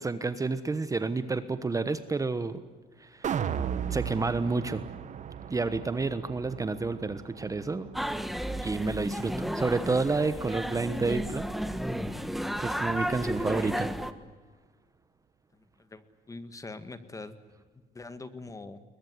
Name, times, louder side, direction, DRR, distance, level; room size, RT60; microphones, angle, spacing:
voice 1, 0.0-2.6 3.0-3.3 3.9-4.8 5.5-7.9 8.6-11.4 12.6-13.9, right 3 dB, 20° right, 12 dB, 1.2 m, -30 dB
sound 1, 3.2-9.5 9.8-9.9, right 8 dB, 45° right, 1.3 m, -36 dB
sound 2, 7.9-14.1, equal, ahead, 1.4 m, -33 dB
voice 2, 15.5-17.3 17.9-18.8, left 3 dB, 20° left, 12 dB, 1.7 m, -43 dB
22.0 x 21.0 x 9.6 m, 1.4 s
cardioid pair, 110°, 17 cm